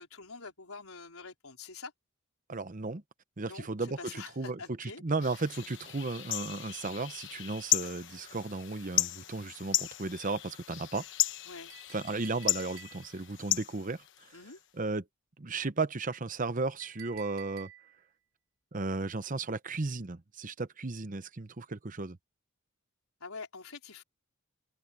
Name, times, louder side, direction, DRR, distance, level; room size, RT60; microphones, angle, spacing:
voice 1, 0.0-1.9 3.4-5.0 11.4-11.7 14.3-14.6 23.2-24.0, left 4 dB, 75° left, 4.4 m, -46 dB
voice 2, 2.5-3.0 3.4-11.1 11.9-14.0 14.8-15.0 15.4-17.7 18.7-22.2, right 3 dB, 35° right, 0.8 m, -35 dB
sound 1, 5.2-14.6, left 14 dB, 60° left, 1.1 m, -35 dB
Chink clink, 11.7-13.3 16.8-18.1, right 12 dB, 75° right, 3.1 m, -52 dB
head